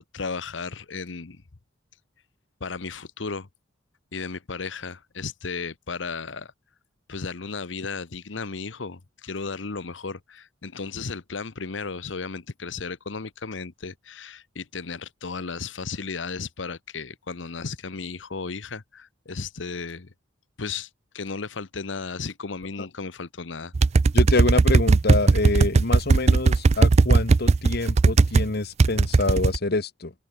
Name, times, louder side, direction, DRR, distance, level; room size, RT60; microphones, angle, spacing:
voice 1, 0.0-1.4 2.6-3.5 4.1-6.5 7.1-20.1 20.6-20.9 21.1-23.7, left 4 dB, 75° left, 1.0 m, -34 dB
sound 1, 23.7-28.4 28.8-29.6, right 3 dB, 35° right, 0.4 m, -17 dB
voice 2, 24.1-30.1, left 2 dB, 55° left, 1.3 m, -26 dB
open air
head